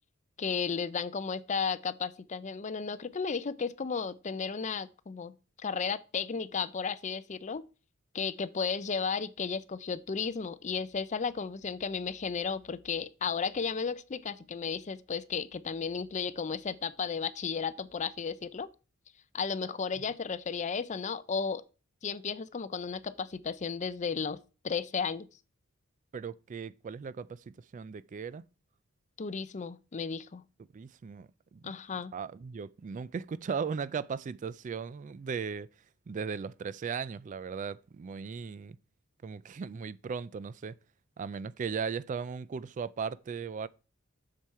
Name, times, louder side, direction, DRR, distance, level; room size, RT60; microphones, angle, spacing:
voice 1, 0.4-5.3 5.6-7.6 8.1-18.7 19.3-21.6 22.0-24.4 24.6-25.3 29.2-30.4 31.6-32.1, left 5 dB, 35° left, 0.5 m, -34 dB
voice 2, 26.1-28.5 30.7-31.7 32.1-35.7 36.1-38.8 39.2-40.8 41.2-43.7, right 6 dB, 40° right, 0.3 m, -37 dB
7.4 x 6.9 x 4.7 m
head